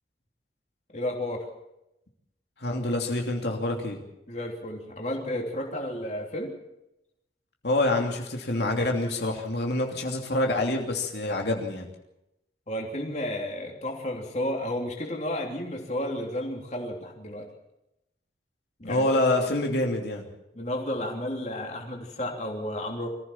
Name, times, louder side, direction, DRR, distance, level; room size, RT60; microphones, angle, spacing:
voice 1, 0.9-1.5 4.3-6.5 12.7-17.5 18.8-19.4 20.5-23.1, left 1 dB, 40° left, 1 dB, 3.3 m, -32 dB
voice 2, 2.6-4.0 7.6-11.9 18.8-20.2, left 2 dB, 70° left, 1 dB, 2.9 m, -26 dB
24.0 x 15.5 x 7.3 m, 0.87 s
head